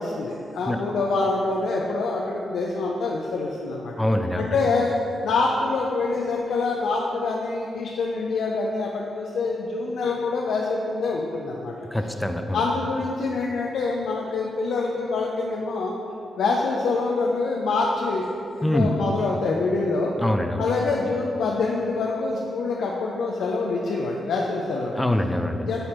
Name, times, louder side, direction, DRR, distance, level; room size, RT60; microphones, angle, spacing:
voice 1, 0.0-3.9 4.4-11.9 12.5-15.9 16.4-20.1 20.6-25.0 25.6-25.9, left 3 dB, 80° left, -2 dB, 0.5 m, -25 dB
voice 2, 4.0-4.4 11.9-12.6 18.6-18.9 20.2-20.6 25.0-25.7, left 1 dB, 10° left, 6 dB, 0.6 m, -24 dB
8.9 x 4.2 x 4.3 m, 2.6 s
supercardioid pair, 45°, 0 cm